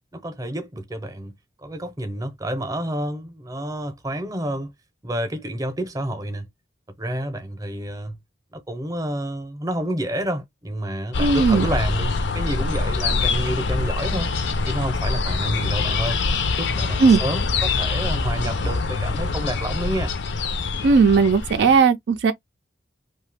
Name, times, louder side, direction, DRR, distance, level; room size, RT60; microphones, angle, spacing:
voice 1, 0.0-1.3 1.6-4.7 5.0-6.5 7.0-8.2 8.5-14.3 14.7-16.2 16.6-20.1, right 1 dB, 20° right, 0.7 m, -29 dB
sound 1, 11.1-21.8, left 4 dB, 65° left, 0.5 m, -24 dB
voice 2, 11.2-11.7 17.0-17.2 20.8-22.3, right 5 dB, 65° right, 0.4 m, -16 dB
2.8 x 2.2 x 3.2 m
head